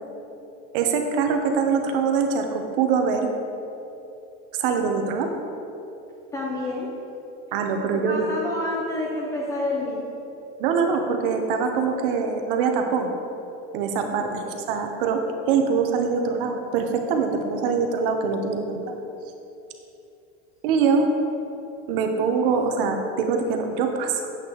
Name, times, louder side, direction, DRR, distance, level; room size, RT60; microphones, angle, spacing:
voice 1, 0.7-3.3 4.5-5.3 7.5-8.3 10.6-13.1 13.7-15.2 15.5-18.9 20.6-21.1 21.9-24.3, right 5 dB, 60° right, 4 dB, 0.9 m, -23 dB
voice 2, 6.3-6.9 7.9-10.1 14.2-14.6, left 2 dB, 10° left, -3 dB, 0.3 m, -29 dB
8.2 x 8.1 x 3.0 m, 2.8 s
supercardioid pair, 175°, 31 cm